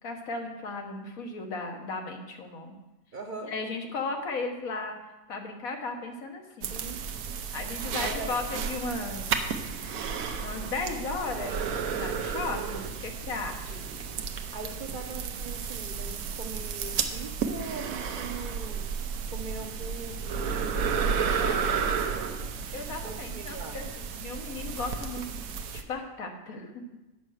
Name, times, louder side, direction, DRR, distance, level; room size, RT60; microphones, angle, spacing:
voice 1, 0.0-2.8 3.5-4.9 5.3-6.9 7.5-9.3 10.4-13.8 21.4-21.9 22.7-25.2 25.7-26.8, left 3 dB, 85° left, 3 dB, 1.6 m, -36 dB
voice 2, 3.1-3.5 6.7-7.0 7.9-8.4 13.7-13.8 14.5-18.8 19.3-21.2 21.5-22.5 23.0-23.8, right 3 dB, 45° right, 4 dB, 0.7 m, -41 dB
sound 1, 6.6-25.8, right 6 dB, 90° right, 1.2 m, -32 dB
8.9 x 5.5 x 6.3 m, 1.0 s
omnidirectional pair, 1.4 m